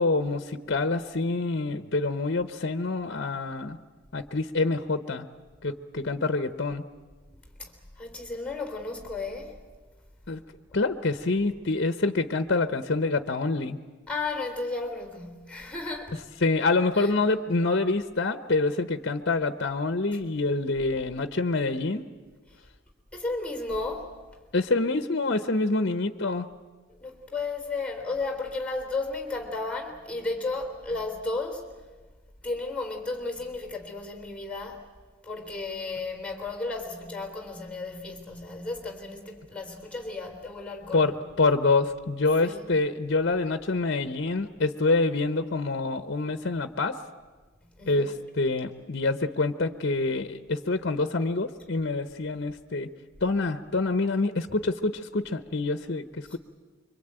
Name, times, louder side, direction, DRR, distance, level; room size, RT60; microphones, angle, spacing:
voice 1, 0.0-3.8 4.1-5.3 5.6-6.8 10.3-10.4 10.7-13.8 16.4-22.1 24.5-26.5 40.9-47.0 47.9-52.9 53.2-56.4, left 3 dB, 60° left, 0.9 m, -26 dB
voice 2, 8.0-9.5 14.1-16.2 16.9-17.1 23.1-24.1 27.0-31.6 32.4-34.8 35.2-41.2 42.4-42.7 47.8-48.1 56.3-56.4, left 3 dB, 5° left, 3.7 m, -34 dB
25.5 x 24.0 x 9.0 m
head